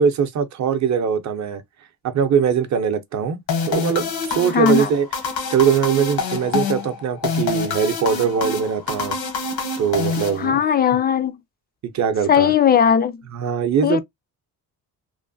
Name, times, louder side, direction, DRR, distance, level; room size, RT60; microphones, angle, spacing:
voice 1, 0.0-1.6 2.0-3.4 3.7-5.1 5.5-9.2 9.8-10.6 11.8-12.5 13.3-14.0, right 7 dB, 50° right, 0.6 m, -21 dB
sound 1, 3.5-10.9, left 5 dB, 75° left, 1.0 m, -26 dB
voice 2, 4.5-4.9 10.4-11.4 12.3-13.2 13.8-14.0, left 8 dB, 25° left, 0.3 m, -17 dB
3.1 x 2.1 x 2.6 m
cardioid pair, 105°, 37 cm